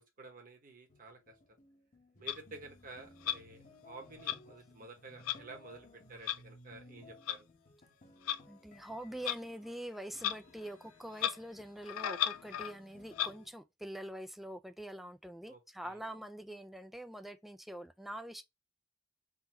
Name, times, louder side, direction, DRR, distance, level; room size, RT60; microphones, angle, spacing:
voice 1, 0.0-1.3 2.2-7.5 15.5-16.0, right 3 dB, 45° right, 1.2 m, -52 dB
sound 1, 0.9-13.5, left 2 dB, 40° left, 1.0 m, -59 dB
Clock, 2.3-2.4 3.2-3.4 4.2-4.4 5.2-5.4 6.2-6.4 7.3-7.4 8.3-8.4 9.2-9.4 10.2-10.4 10.6-10.7 11.1-11.4 11.8-12.7 13.1-13.3, left 11 dB, 80° left, 0.4 m, -34 dB
voice 2, 8.5-18.4, right 1 dB, ahead, 0.4 m, -45 dB
3.8 x 2.7 x 2.9 m
head